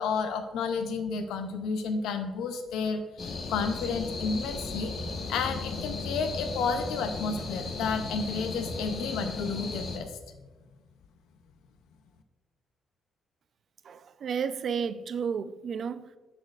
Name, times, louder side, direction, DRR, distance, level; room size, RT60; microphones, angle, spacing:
voice 1, 0.0-4.9 5.3-10.2, left 5 dB, 85° left, 0.5 m, -31 dB
sound 1, 3.2-10.0, left 3 dB, 55° left, 1.1 m, -36 dB
voice 2, 13.9-16.2, right 6 dB, 55° right, 0.4 m, -32 dB
12.5 x 4.2 x 2.4 m
cardioid pair, 90°, 0 cm